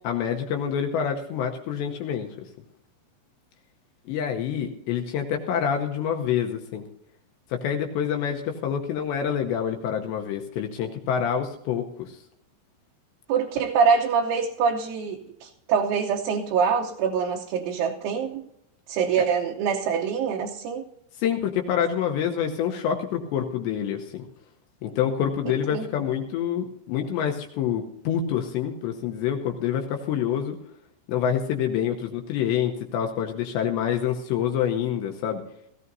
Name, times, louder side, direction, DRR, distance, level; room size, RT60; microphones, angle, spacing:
voice 1, 0.0-2.4 4.1-6.8 7.5-12.2 21.2-24.3 24.8-30.6 31.1-35.4, left 8 dB, 75° left, 3 dB, 2.8 m, -27 dB
voice 2, 13.3-18.4 18.9-20.8 25.7-25.8, right 6 dB, 80° right, -1 dB, 3.3 m, -24 dB
18.0 x 15.5 x 2.7 m, 0.77 s
omnidirectional pair, 5.7 m